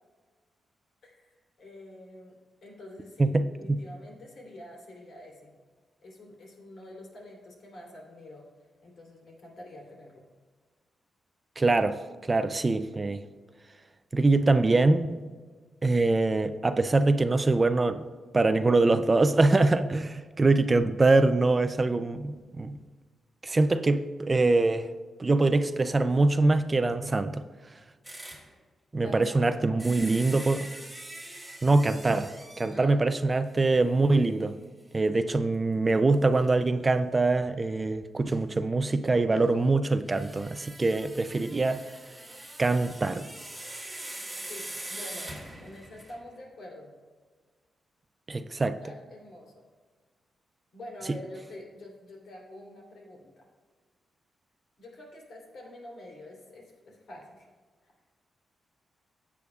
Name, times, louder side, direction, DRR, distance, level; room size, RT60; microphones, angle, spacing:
voice 1, 1.0-2.4 2.6-5.5 6.0-8.4 8.8-10.2 28.9-29.6 32.7-33.0 44.4-45.3 45.6-46.9 48.6-49.6 50.7-53.4 54.8-57.5 57.8-57.9, left 1 dB, 60° left, 3.0 m, -47 dB
voice 2, 3.2-3.8 11.6-13.2 14.1-15.2 15.8-18.1 18.3-22.8 23.4-24.9 25.2-27.4 28.9-30.7 31.6-34.6 34.9-41.8 42.6-43.3 48.3-48.8, right 3 dB, 25° right, 0.4 m, -24 dB
sound 1, 28.0-28.5 29.8-32.8 33.5-33.6 34.0-34.1 36.4-36.5 38.3-38.4 40.1-46.3, right 1 dB, 5° right, 2.2 m, -42 dB
15.0 x 8.4 x 2.3 m
wide cardioid pair, 135°, 0 cm